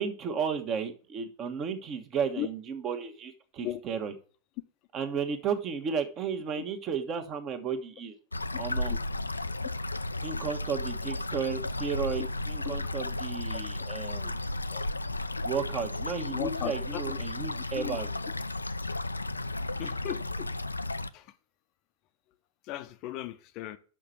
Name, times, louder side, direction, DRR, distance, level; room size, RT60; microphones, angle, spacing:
voice 1, 0.0-4.1 4.9-8.2 8.6-8.9 10.2-14.3 15.4-18.1, right 6 dB, 30° right, 1.3 m, -33 dB
sound 1, 8.3-21.1, left 2 dB, 80° left, 0.4 m, -34 dB
voice 2, 16.3-17.2 17.8-18.0 19.8-20.5 21.1-21.3 22.6-23.8, left 13 dB, 40° left, 0.6 m, -37 dB
6.2 x 6.0 x 6.8 m
figure-of-eight pair, 90°, 0 cm